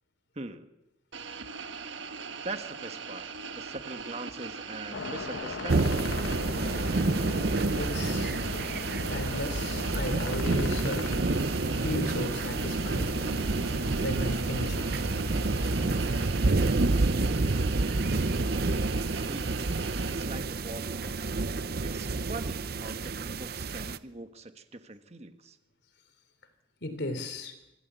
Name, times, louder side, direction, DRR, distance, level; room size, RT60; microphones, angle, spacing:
voice 1, 0.3-0.7 2.4-6.0 19.2-19.7 20.1-21.2 21.8-25.6, right 2 dB, 35° right, 1.4 m, -42 dB
sound 1, 1.1-20.3, right 5 dB, 75° right, 1.6 m, -40 dB
sound 2, 4.9-16.3, left 3 dB, 80° left, 1.0 m, -40 dB
sound 3, 5.7-24.0, right 3 dB, 50° right, 0.7 m, -29 dB
voice 2, 7.7-8.3 9.1-11.1 11.8-13.2 14.0-14.9 26.8-27.5, left 1 dB, 60° left, 3.4 m, -35 dB
25.5 x 15.5 x 8.2 m
head